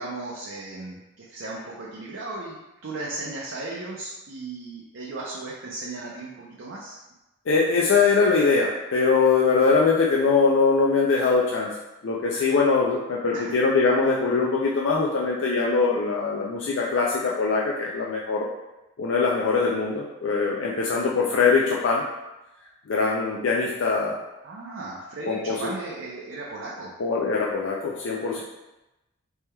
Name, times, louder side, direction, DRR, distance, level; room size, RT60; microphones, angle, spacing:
voice 1, 0.0-7.0 13.3-13.6 24.4-26.9, right 2 dB, 65° right, -4 dB, 0.5 m, -36 dB
voice 2, 7.5-11.7 12.0-18.5 19.0-22.0 22.9-24.2 25.3-25.6 27.0-28.4, left 4 dB, 65° left, -3 dB, 0.4 m, -22 dB
4.3 x 3.4 x 2.2 m, 0.99 s
head